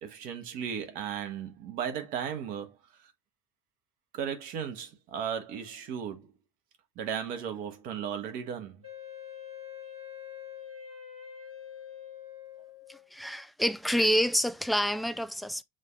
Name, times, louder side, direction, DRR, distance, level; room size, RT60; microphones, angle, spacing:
voice 1, 0.0-3.1 4.1-6.3 7.0-8.8, right 8 dB, 55° right, 1.1 m, -36 dB
Wind instrument woodwind instrument, 8.8-13.1, left 9 dB, 90° right, 2.1 m, -45 dB
voice 2, 12.9-15.6, equal, ahead, 0.3 m, -28 dB
7.5 x 2.6 x 2.4 m
figure-of-eight pair, 70°, 18 cm